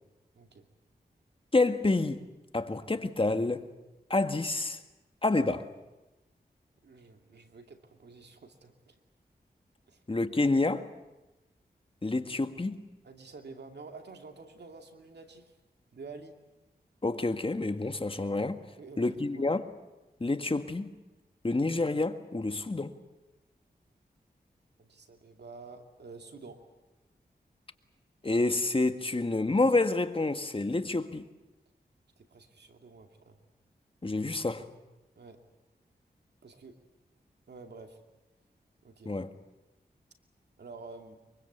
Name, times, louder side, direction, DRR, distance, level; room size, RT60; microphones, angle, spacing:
voice 1, 0.3-0.6 6.8-9.0 9.9-10.0 13.0-15.5 15.9-16.3 18.8-19.4 24.8-26.6 32.2-33.4 35.2-35.4 36.4-36.8 37.5-38.0 38.8-39.1 40.6-41.2, right 4 dB, 85° right, 2.5 m, -49 dB
voice 2, 1.5-2.2 2.5-3.7 4.1-4.8 5.2-5.7 10.1-10.9 12.0-12.8 17.0-18.6 19.0-19.7 20.2-21.0 21.4-22.9 28.2-31.3 34.0-34.7 39.0-39.3, left 2 dB, 30° left, 1.7 m, -28 dB
24.0 x 23.5 x 8.2 m
cardioid pair, 55°, 17 cm